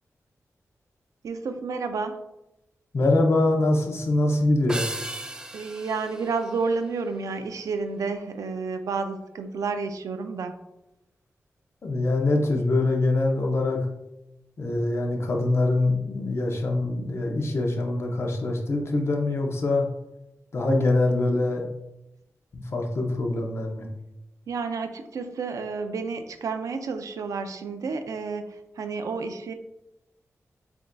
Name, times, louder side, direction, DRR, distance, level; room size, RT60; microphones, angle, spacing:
voice 1, 1.2-2.2 5.5-10.5 24.5-29.5, right 4 dB, 80° right, 8 dB, 0.4 m, -30 dB
voice 2, 2.9-4.8 11.8-13.9 14.6-19.9 20.5-21.7 22.5-23.9, left 2 dB, 50° left, 2 dB, 0.7 m, -24 dB
sound 1, 4.7-7.3, right 1 dB, 15° right, 0.3 m, -37 dB
7.0 x 2.5 x 2.2 m, 0.90 s
wide cardioid pair, 130°, 6 cm